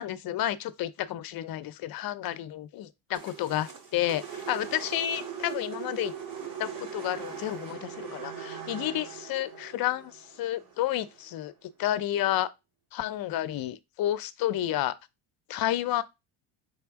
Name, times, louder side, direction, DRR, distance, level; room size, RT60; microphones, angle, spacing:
voice 1, 0.0-6.1 6.6-12.5 12.9-14.9 15.5-16.0, left 13 dB, 50° left, 0.6 m, -31 dB
sound 1, 3.1-11.4, right 7 dB, 45° right, 1.7 m, -40 dB
4.2 x 3.4 x 3.6 m
supercardioid pair, 95°, 48 cm